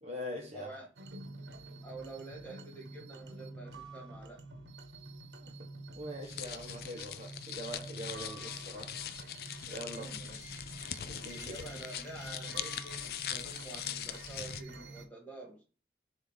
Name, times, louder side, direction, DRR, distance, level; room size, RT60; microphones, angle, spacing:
voice 1, 0.0-0.7 5.4-5.7 5.9-8.9 9.6-10.1 11.1-11.7, equal, 35° right, 1.2 m, -43 dB
voice 2, 0.5-0.9 1.8-4.4 9.9-10.4 11.4-15.6, right 2 dB, 10° left, 2.0 m, -48 dB
sound 1, 1.0-15.1, right 2 dB, 80° right, 1.1 m, -48 dB
sound 2, 6.2-14.6, left 10 dB, 55° left, 0.4 m, -42 dB
7.4 x 2.8 x 5.0 m
head